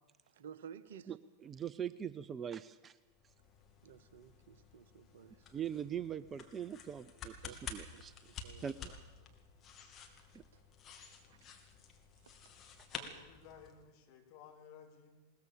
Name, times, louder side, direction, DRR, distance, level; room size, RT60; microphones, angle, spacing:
voice 1, 0.3-1.1 3.8-5.5 7.4-8.0 8.3-8.6 10.5-10.6 12.2-12.4, right 8 dB, 60° right, 14 dB, 1.1 m, -54 dB
voice 2, 1.4-3.0 5.5-8.1 8.6-8.9 10.3-10.4, right 9 dB, 20° right, 16 dB, 0.6 m, -42 dB
sound 1, 3.1-13.9, left 6 dB, 25° left, 2.7 m, -51 dB
voice 3, 8.8-9.3 11.2-11.3 12.9-15.2, left 7 dB, 45° left, 2 dB, 3.7 m, -57 dB
21.0 x 19.0 x 6.9 m, 1.1 s
figure-of-eight pair, 90°, 0 cm